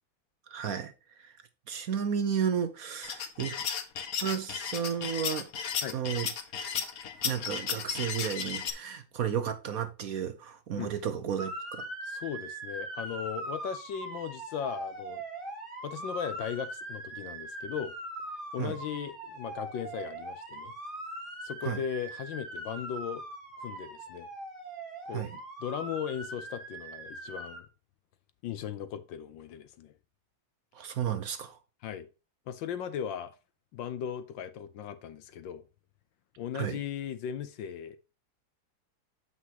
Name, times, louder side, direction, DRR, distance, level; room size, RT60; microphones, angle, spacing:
voice 1, 0.5-0.9 1.2-1.3 1.7-3.7 4.2-5.5 5.9-6.3 7.2-11.8 18.6-18.7 21.6-21.8 25.1-25.3 30.7-31.6 36.5-36.8, right 8 dB, 60° right, 1.0 m, -33 dB
sound 1, 3.0-8.7, left 7 dB, 55° left, 1.2 m, -34 dB
Motor vehicle (road) / Siren, 11.4-27.6, right 1 dB, 25° right, 3.1 m, -41 dB
voice 2, 12.0-15.2 15.8-17.9 18.5-20.7 21.4-23.2 23.6-24.3 25.1-25.3 25.6-27.7 28.4-29.9 31.8-32.1 32.5-33.3 33.7-35.6 36.4-38.0, left 8 dB, 70° left, 1.3 m, -37 dB
7.8 x 5.9 x 2.9 m
omnidirectional pair, 2.3 m